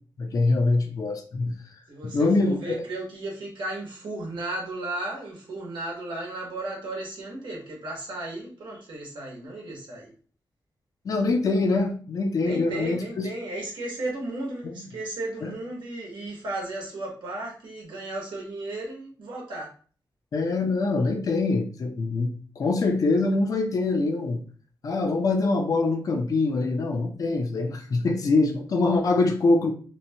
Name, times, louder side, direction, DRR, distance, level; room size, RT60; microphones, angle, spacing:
voice 1, 0.2-1.5 2.0-2.8 11.0-13.3 14.6-14.8 15.4-15.5 20.3-24.4 24.8-29.7, left 3 dB, 50° left, 2 dB, 0.5 m, -24 dB
voice 2, 1.9-10.1 12.4-19.7, right 2 dB, 85° right, -3 dB, 0.9 m, -34 dB
2.7 x 2.1 x 2.7 m, 0.41 s
wide cardioid pair, 155°, 8 cm